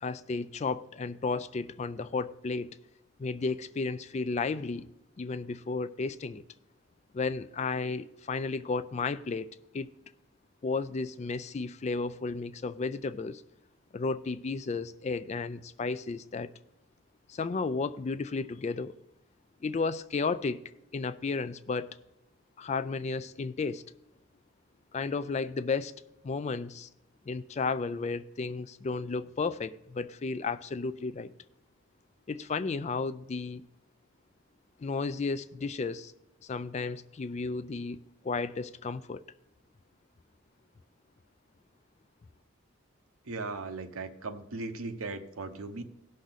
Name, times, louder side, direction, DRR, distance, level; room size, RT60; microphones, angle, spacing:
voice 1, 0.0-2.7 3.2-4.9 5.2-6.4 7.1-9.5 9.7-9.9 10.6-13.4 13.9-16.5 17.3-18.9 19.6-20.6 20.9-22.0 22.6-23.8 24.9-25.9 26.2-26.9 27.3-31.3 32.3-33.7 34.8-36.1 36.4-39.2, left 4 dB, 30° left, 0.3 m, -33 dB
voice 2, 43.2-45.8, right 3 dB, 80° right, 0.9 m, -38 dB
16.5 x 6.4 x 4.0 m
head